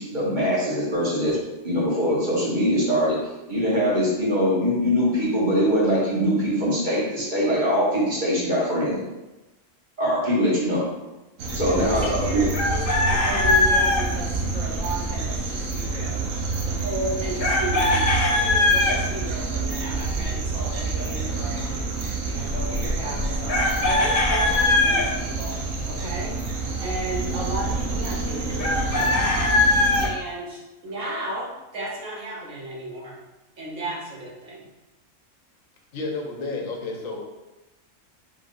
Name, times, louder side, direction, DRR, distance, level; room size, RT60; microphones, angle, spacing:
voice 1, 0.0-3.2 3.5-9.1 10.0-10.9 11.5-12.4, equal, 40° right, -6 dB, 1.5 m, -22 dB
sound 1, 11.4-30.1, right 3 dB, 90° right, 1.2 m, -28 dB
voice 2, 11.7-16.2 16.6-21.8 22.2-25.6 25.9-26.4 26.8-29.2 30.0-33.2 33.6-34.7, right 1 dB, 75° right, -4 dB, 1.5 m, -34 dB
Chicken rooster, 12.5-14.0 17.4-19.0 23.5-25.0 28.6-30.1, left 2 dB, 50° left, 0.9 m, -21 dB
voice 3, 35.9-37.2, left 3 dB, 85° left, 0 dB, 1.2 m, -31 dB
5.2 x 3.6 x 2.6 m, 1.1 s
omnidirectional pair, 1.4 m